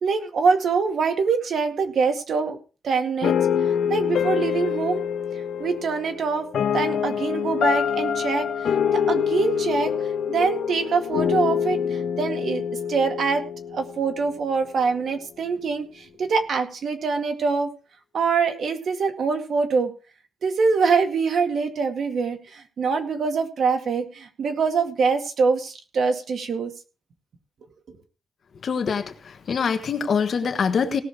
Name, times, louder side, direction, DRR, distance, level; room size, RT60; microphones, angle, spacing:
voice 1, 0.0-2.6 2.8-3.4 3.9-5.0 5.6-6.5 6.7-9.9 10.3-12.6 12.9-13.4 13.7-17.7 18.1-19.9 20.4-26.7, right 5 dB, 65° right, 6 dB, 2.1 m, -24 dB
sound 1, 3.2-14.3, left 8 dB, 80° left, 1.1 m, -25 dB
voice 2, 28.6-29.1 29.5-31.0, left 6 dB, 55° left, 7 dB, 1.4 m, -24 dB
18.0 x 6.5 x 4.9 m, 0.35 s
wide cardioid pair, 140°, 0 cm